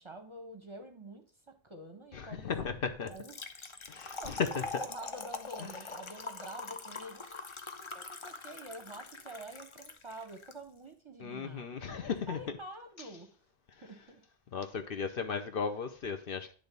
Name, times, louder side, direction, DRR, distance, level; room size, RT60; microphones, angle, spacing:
voice 1, 0.0-3.4 4.2-7.4 7.8-13.3 13.8-14.2, right 1 dB, 30° right, 0.8 m, -48 dB
voice 2, 2.1-3.1 3.9-4.3 11.2-12.4 14.5-16.5, left 6 dB, 60° left, 0.8 m, -36 dB
Trickle dribble / Fill (with liquid), 3.1-10.5, left 3 dB, 35° left, 0.6 m, -43 dB
10.0 x 3.4 x 5.2 m
omnidirectional pair, 1.1 m